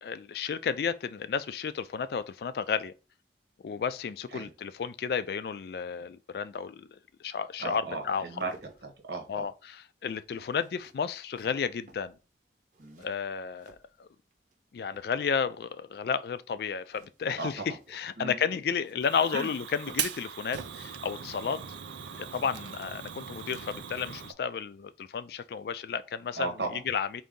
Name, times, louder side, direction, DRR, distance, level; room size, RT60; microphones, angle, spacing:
voice 1, 0.0-2.9 3.6-8.2 9.3-12.2 13.0-14.1 14.7-17.6 17.9-21.6 22.2-26.5 26.9-27.2, left 6 dB, 60° left, 0.3 m, -32 dB
voice 2, 7.6-8.5 8.8-9.5 12.8-13.1 17.4-17.5 18.2-18.4 19.3-19.5 22.3-22.4 26.3-26.8, right 3 dB, 70° right, 1.0 m, -36 dB
sound 1, 8.1-14.6 14.8-15.5 16.8-20.3 20.6-20.7, right 2 dB, 45° right, 0.7 m, -58 dB
Fire, 19.0-24.3, right 8 dB, 90° right, 0.4 m, -39 dB
3.9 x 2.6 x 3.6 m
head